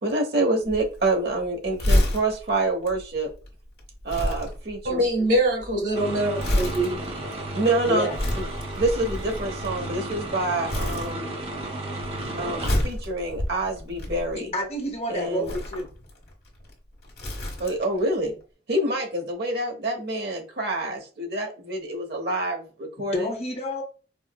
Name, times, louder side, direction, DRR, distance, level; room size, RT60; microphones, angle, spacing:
voice 1, 0.0-3.3 4.0-5.0 7.5-8.1 8.3-8.4 8.8-11.4 12.4-14.5 15.1-15.5 17.6-18.4 18.7-23.3, right 2 dB, 65° right, 0.9 m, -27 dB
Crumpling crinkling, 0.6-10.3 10.7-11.6 11.9-14.6 15.3-18.0 18.3-18.4, left 1 dB, 60° left, 1.3 m, -29 dB
voice 2, 4.8-7.0, right 1 dB, 85° right, 1.6 m, -23 dB
sound 1, 5.9-12.9, right 2 dB, 35° right, 0.7 m, -33 dB
voice 3, 7.8-8.2 14.3-15.9 23.1-23.8, equal, 35° left, 0.7 m, -29 dB
4.7 x 2.0 x 2.2 m
head